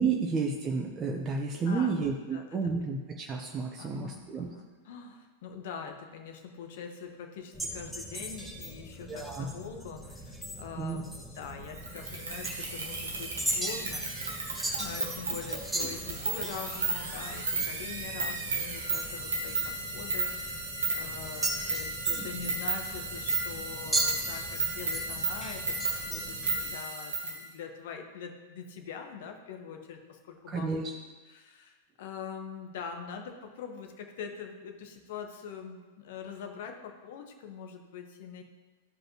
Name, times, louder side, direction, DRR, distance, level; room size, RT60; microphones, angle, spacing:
voice 1, 0.0-4.5 9.1-9.5 10.8-11.0 22.2-22.3 30.5-30.9, right 4 dB, 25° right, 1 dB, 0.8 m, -31 dB
voice 2, 1.7-2.7 3.8-14.1 14.8-30.8 31.3-38.4, left 6 dB, 60° left, 4 dB, 1.1 m, -43 dB
sound 1, 7.5-26.7, right 1 dB, 5° right, 1.6 m, -39 dB
sound 2, 11.8-27.4, right 3 dB, 75° right, 1.5 m, -34 dB
13.5 x 5.2 x 3.0 m, 1.3 s
figure-of-eight pair, 95°, 0 cm